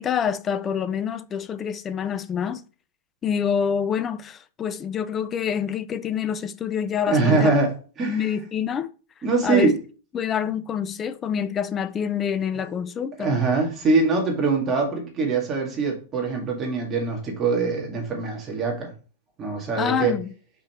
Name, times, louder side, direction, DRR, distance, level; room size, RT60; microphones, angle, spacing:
voice 1, 0.0-2.6 3.2-7.5 8.0-8.9 9.4-9.7 10.1-13.4 19.8-20.3, left 8 dB, 20° left, 0.5 m, -26 dB
voice 2, 7.1-7.7 8.0-8.2 9.2-9.7 13.2-18.9 19.4-20.1, right 4 dB, 20° right, 2.1 m, -23 dB
5.8 x 5.2 x 4.4 m
supercardioid pair, 160°, 0 cm